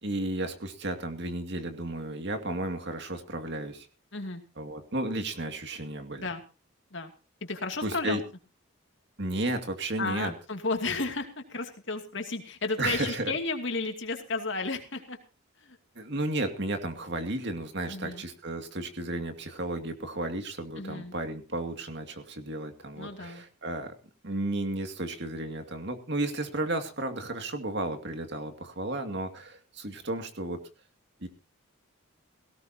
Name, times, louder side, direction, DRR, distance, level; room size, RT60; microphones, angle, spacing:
voice 1, 0.0-3.9 4.6-6.3 7.8-8.2 9.2-10.3 12.8-13.3 16.0-23.9 24.2-30.6 31.2-31.3, right 2 dB, 50° right, 6 dB, 2.4 m, -33 dB
voice 2, 7.4-8.2 10.0-15.2 15.6-15.8 17.9-18.2 20.8-21.1 23.0-23.4, left 3 dB, 55° left, 5 dB, 2.6 m, -33 dB
17.5 x 17.5 x 2.9 m, 0.32 s
head